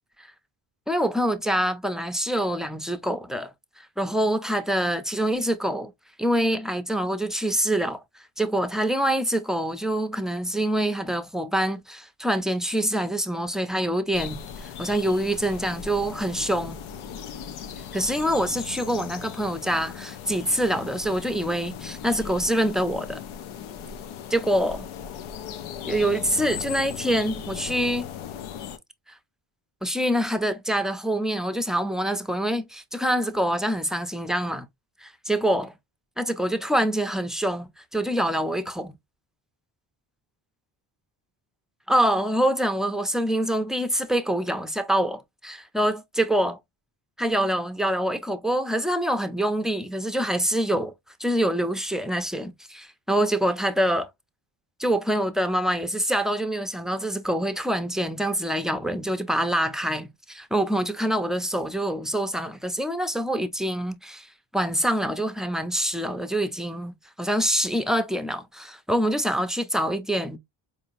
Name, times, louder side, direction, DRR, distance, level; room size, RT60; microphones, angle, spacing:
voice 1, 0.9-5.9 6.2-8.0 8.4-16.8 17.9-23.2 24.3-24.9 25.8-28.1 29.8-34.7 35.0-35.7 36.2-39.0 41.9-46.6 47.2-50.9 51.2-54.1 54.8-70.4, right 1 dB, ahead, 0.5 m, -25 dB
sound 1, 14.1-28.8, left 8 dB, 75° left, 0.8 m, -38 dB
4.4 x 2.8 x 2.6 m
cardioid pair, 90°, 49 cm